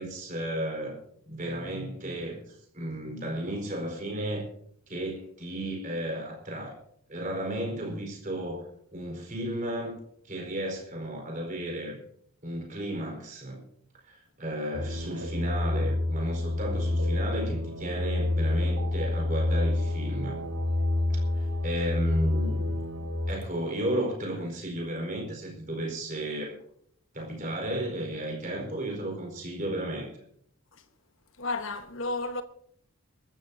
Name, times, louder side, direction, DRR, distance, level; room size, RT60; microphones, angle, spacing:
voice 1, 0.0-4.5 4.9-6.8 7.1-10.0 10.3-12.0 12.4-13.6 14.1-20.4 21.1-21.2 21.6-22.8 23.3-26.6 27.1-30.1, right 1 dB, 35° right, 4.4 m, -34 dB
sound 1, 14.7-23.3, left 2 dB, 85° right, 2.9 m, -28 dB
voice 2, 31.4-32.4, left 3 dB, 60° left, 1.2 m, -32 dB
23.0 x 13.5 x 2.8 m
head